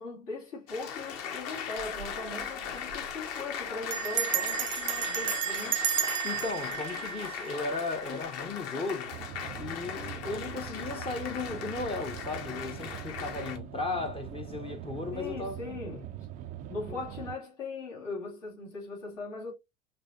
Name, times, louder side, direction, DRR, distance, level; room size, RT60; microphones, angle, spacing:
voice 1, 0.0-5.8 15.1-16.1 16.7-19.5, left 3 dB, 70° left, 2.6 m, -39 dB
Applause, 0.7-13.6, left 7 dB, 40° left, 1.1 m, -39 dB
Bell, 1.8-2.1 2.4-2.5 2.7-3.1 3.9-8.0, right 10 dB, 75° right, 0.7 m, -32 dB
voice 2, 6.2-9.1 9.6-15.6 16.9-17.0, left 3 dB, 15° left, 0.7 m, -36 dB
sound 1, 9.1-17.4, right 11 dB, 25° right, 0.4 m, -42 dB
5.3 x 3.3 x 2.6 m
figure-of-eight pair, 75°, 38 cm